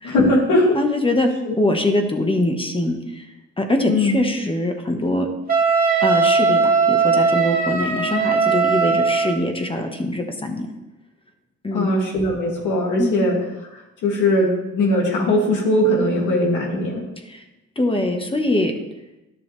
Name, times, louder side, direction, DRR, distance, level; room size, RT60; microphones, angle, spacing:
voice 1, 0.0-0.8 1.4-1.6 3.9-4.2 11.7-13.4 14.0-17.0, left 1 dB, 80° left, -2 dB, 2.5 m, -19 dB
voice 2, 0.7-1.3 1.6-3.2 3.6-5.3 6.0-10.7 11.6-11.9 13.0-13.2 17.3-17.4 17.8-18.7, left 1 dB, 15° left, 3 dB, 1.3 m, -23 dB
Wind instrument woodwind instrument, 5.5-9.4, right 5 dB, 30° right, 1.7 m, -18 dB
11.5 x 7.0 x 3.4 m, 1.0 s
cardioid pair, 90°, 30 cm